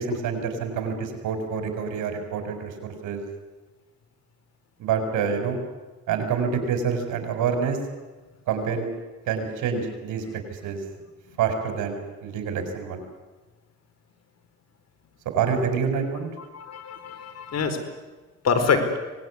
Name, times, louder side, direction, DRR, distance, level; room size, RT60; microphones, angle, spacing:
voice 1, 0.0-3.2 4.8-5.6 6.1-7.8 8.5-8.9 9.3-10.2 10.5-10.8 11.4-13.0 15.3-16.3, right 6 dB, 85° right, 6 dB, 5.2 m, -27 dB
voice 2, 16.4-17.8 18.4-19.0, left 5 dB, 55° left, 8 dB, 4.4 m, -25 dB
25.0 x 19.5 x 9.7 m, 1.2 s
cardioid pair, 90°, 30 cm